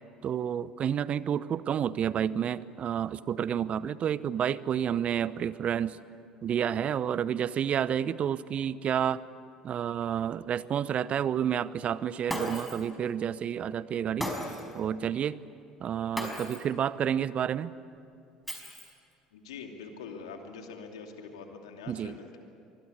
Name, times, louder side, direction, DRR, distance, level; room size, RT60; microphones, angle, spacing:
voice 1, 0.2-6.0 6.4-9.2 9.6-14.3 14.7-15.4 15.8-17.7 21.9-22.2, right 9 dB, 45° right, 18 dB, 0.8 m, -30 dB
Shatter, 12.3-12.9 14.2-14.8 16.2-16.7 18.5-19.1, equal, ahead, 5.1 m, -36 dB
voice 2, 19.3-22.4, left 5 dB, 75° left, 4 dB, 2.7 m, -44 dB
25.5 x 20.5 x 9.7 m, 2.5 s
figure-of-eight pair, 60°, 3 cm